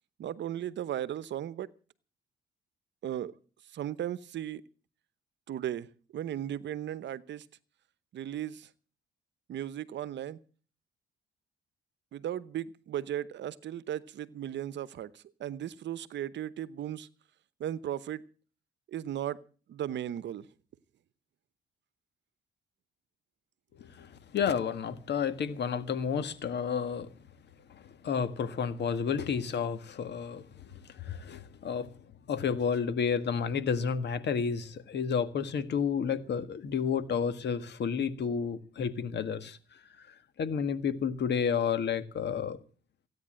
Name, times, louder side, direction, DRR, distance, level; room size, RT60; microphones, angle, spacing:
voice 1, 0.2-1.7 3.0-3.3 3.7-4.6 5.5-5.9 6.1-7.4 8.1-8.7 9.5-10.4 12.1-17.1 17.6-18.2 18.9-19.4 19.7-20.5, right 11 dB, 65° right, 0.9 m, -36 dB
voice 2, 23.7-27.1 27.7-31.9 32.3-39.6 40.0-40.1 40.4-42.6, left 6 dB, 60° left, 1.7 m, -31 dB
16.0 x 9.4 x 7.6 m
cardioid pair, 90°, 20 cm